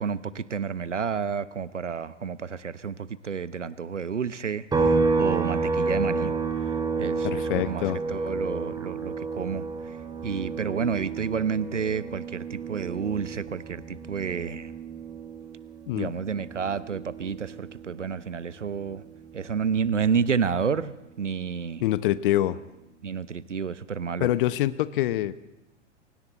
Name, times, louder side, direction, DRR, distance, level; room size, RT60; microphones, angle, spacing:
voice 1, 0.0-6.3 6.6-14.7 16.0-19.0 19.3-21.8 23.0-24.3, right 6 dB, 80° right, 16 dB, 1.0 m, -30 dB
sound 1, 4.7-18.3 18.6-20.8, right 4 dB, 10° right, 2.8 m, -30 dB
voice 2, 7.2-8.0 15.9-16.1 21.8-22.6 24.2-25.4, left 14 dB, 45° left, 15 dB, 1.0 m, -25 dB
29.0 x 23.5 x 4.1 m, 0.99 s
figure-of-eight pair, 95°, 36 cm